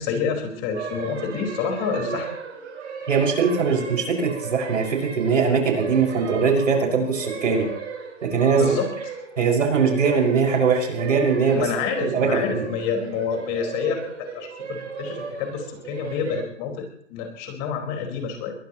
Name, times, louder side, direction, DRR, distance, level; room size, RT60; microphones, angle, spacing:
voice 1, 0.0-2.3 8.6-8.9 11.5-18.5, left 6 dB, 30° left, 3 dB, 4.9 m, -28 dB
sound 1, 0.7-16.4, right 5 dB, 65° right, 7.5 m, -35 dB
voice 2, 3.1-7.7 8.3-8.7 9.4-11.6 12.1-12.7, right 5 dB, 80° right, 1 dB, 6.1 m, -21 dB
22.5 x 20.0 x 3.1 m, 0.65 s
hypercardioid pair, 150°, 37 cm